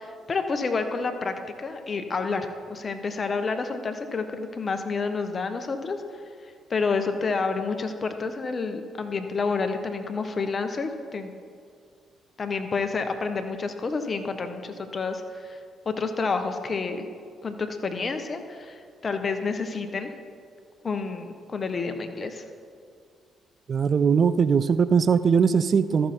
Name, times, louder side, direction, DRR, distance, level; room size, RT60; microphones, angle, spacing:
voice 1, 0.0-11.3 12.4-15.6 15.8-17.1 17.4-20.1 20.8-22.4, left 4 dB, 45° left, 7 dB, 1.1 m, -29 dB
voice 2, 23.7-26.1, right 6 dB, 50° right, 14 dB, 0.4 m, -20 dB
13.5 x 6.6 x 4.4 m, 2.1 s
hypercardioid pair, 50°, 0 cm